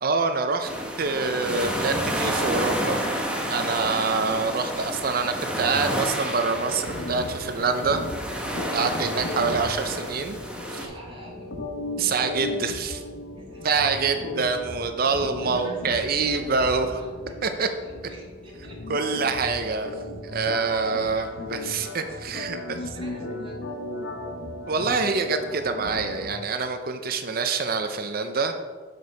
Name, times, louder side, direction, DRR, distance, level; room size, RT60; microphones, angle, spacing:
voice 1, 0.0-0.7 1.0-3.0 3.5-8.0 8.7-10.4 10.7-10.9 12.0-13.0 13.6-16.9 17.4-17.7 18.9-19.9 20.2-22.6 24.7-28.5, right 4 dB, 55° right, 7 dB, 0.6 m, -25 dB
sound 1, 0.6-10.8, right 1 dB, 5° right, 1.2 m, -30 dB
sound 2, 6.5-26.4, left 1 dB, 75° left, 0.9 m, -36 dB
voice 2, 8.9-9.3 10.8-11.5 12.0-12.5 13.4-14.5 15.4-17.4 17.8-18.8 19.1-19.8 22.3-23.8, equal, 30° right, -3 dB, 2.3 m, -46 dB
6.9 x 6.6 x 5.5 m, 1.5 s
head